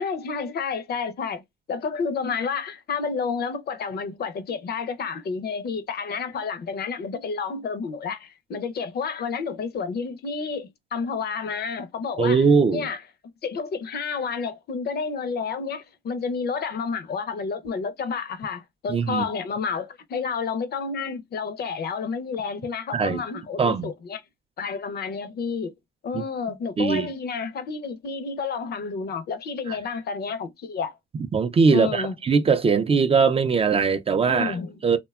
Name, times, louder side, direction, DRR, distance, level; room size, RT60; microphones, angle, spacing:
voice 1, 0.0-1.4 1.7-12.4 12.7-13.0 13.4-24.2 24.6-25.7 26.0-30.9 31.7-32.2 34.3-34.7, left 5 dB, 55° left, 0.5 m, -30 dB
voice 2, 12.2-12.9 18.9-19.3 22.9-23.2 23.6-23.9 26.1-27.1 29.7-29.8 31.3-34.6 34.8-35.0, right 5 dB, 30° right, 0.4 m, -21 dB
2.7 x 2.2 x 2.3 m
cardioid pair, 90°, 20 cm